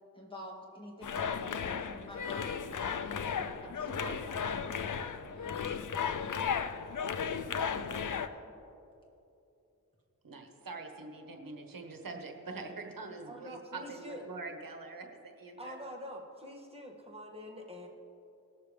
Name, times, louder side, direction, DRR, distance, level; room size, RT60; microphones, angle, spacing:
voice 1, 0.1-3.2 3.6-5.5 6.1-6.4 7.6-8.5, left 1 dB, 15° left, -2 dB, 2.6 m, -48 dB
sound 1, 1.0-8.3, left 6 dB, 60° left, 0.6 m, -35 dB
voice 2, 10.2-15.7, right 3 dB, 70° right, 3 dB, 1.3 m, -44 dB
voice 3, 13.2-14.3 15.6-17.9, equal, 15° right, -1 dB, 2.0 m, -45 dB
19.0 x 6.8 x 3.4 m, 2.8 s
cardioid pair, 50°, 34 cm